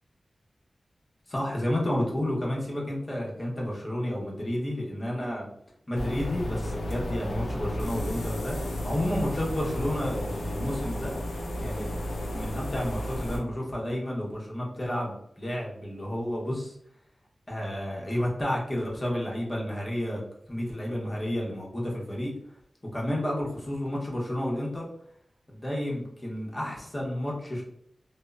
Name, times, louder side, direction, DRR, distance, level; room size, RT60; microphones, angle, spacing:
voice 1, 1.3-5.5 5.9-11.1 11.6-11.9 12.3-16.8 17.5-20.2 20.5-22.3 22.9-24.8 25.5-27.6, left 1 dB, 30° left, -3 dB, 0.9 m, -31 dB
sound 1, 5.9-13.4, left 1 dB, 85° left, 0.4 m, -33 dB
2.8 x 2.0 x 2.3 m, 0.70 s
cardioid pair, 60°, 0 cm